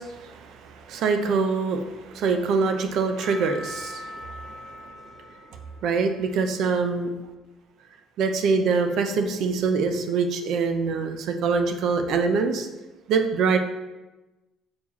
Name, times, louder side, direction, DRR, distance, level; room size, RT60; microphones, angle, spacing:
voice 1, 0.0-4.8 5.8-7.1 8.2-12.7 13.1-13.6, right 4 dB, 70° right, 6 dB, 0.8 m, -24 dB
Percussion / Church bell, 3.2-7.3, left 1 dB, 20° right, 1.6 m, -42 dB
6.7 x 4.7 x 4.1 m, 1.1 s
supercardioid pair, 80°, 0 cm